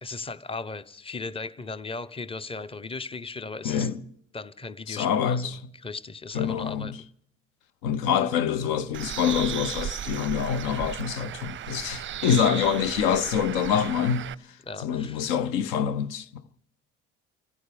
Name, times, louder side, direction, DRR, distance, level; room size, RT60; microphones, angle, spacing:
voice 1, 0.0-3.9 4.3-5.5 5.7-7.0 12.3-12.7 14.7-15.3, left 3 dB, 15° left, 0.9 m, -37 dB
voice 2, 3.6-4.0 4.9-5.6 6.3-6.9 7.8-16.3, left 8 dB, 65° left, 0.9 m, -26 dB
Bird, 8.9-14.3, right 11 dB, 30° right, 0.5 m, -35 dB
27.0 x 15.5 x 3.5 m
hypercardioid pair, 55°, 37 cm